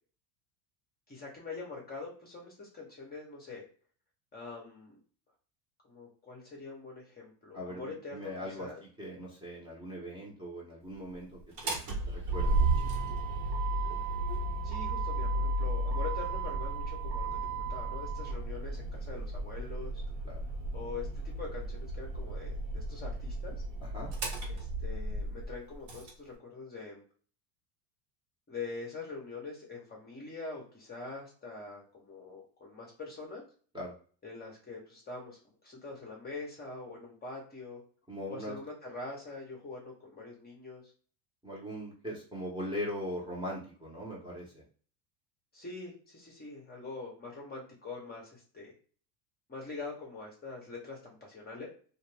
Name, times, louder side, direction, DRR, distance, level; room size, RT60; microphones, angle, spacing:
voice 1, 1.1-3.6 4.3-5.0 5.8-8.8 14.6-20.0 20.7-23.6 24.5-27.0 28.5-33.4 34.2-37.8 38.3-40.9 45.5-48.7 49.5-51.7, left 3 dB, 20° left, -1 dB, 0.9 m, -44 dB
voice 2, 7.5-8.7 9.0-11.8 12.1-13.2 20.2-20.4 23.8-24.1 33.7-33.9 38.1-38.6 41.4-44.6, equal, 10° right, -4 dB, 0.9 m, -40 dB
Motor vehicle (road), 11.4-26.1, right 2 dB, 65° right, 1.3 m, -33 dB
2.5 x 2.5 x 3.3 m, 0.42 s
supercardioid pair, 110°, 50 cm